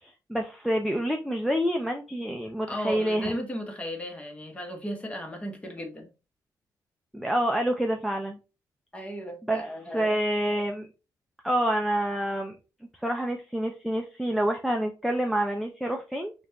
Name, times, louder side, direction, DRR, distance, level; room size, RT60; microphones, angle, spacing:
voice 1, 0.0-3.3 7.1-8.4 9.4-9.6 9.9-10.9 11.4-12.6 13.0-16.3, right 1 dB, ahead, 0.5 m, -27 dB
voice 2, 2.7-6.1 8.9-10.2, equal, 15° left, 1.1 m, -35 dB
5.3 x 2.5 x 2.9 m
wide cardioid pair, 140°, 7 cm